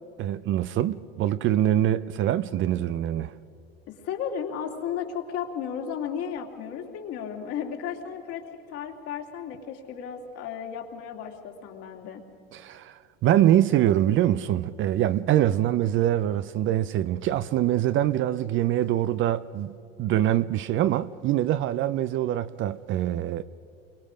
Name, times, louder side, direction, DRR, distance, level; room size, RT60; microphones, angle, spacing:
voice 1, 0.2-3.3 12.5-19.7 20.0-23.4, right 12 dB, 40° right, 0.6 m, -24 dB
voice 2, 3.9-8.4 8.7-12.2, left 8 dB, 55° left, 2.6 m, -34 dB
29.0 x 23.5 x 5.1 m
hypercardioid pair, 100°, 30 cm